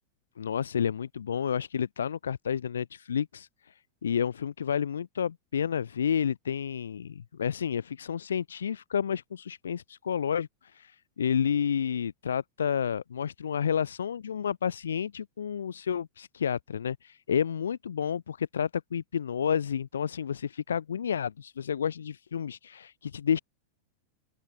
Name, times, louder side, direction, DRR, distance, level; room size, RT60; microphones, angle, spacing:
voice 1, 0.4-3.7 4.0-23.4, left 8 dB, 70° left, 5.3 m, -30 dB
open air
figure-of-eight pair, 90°, 0 cm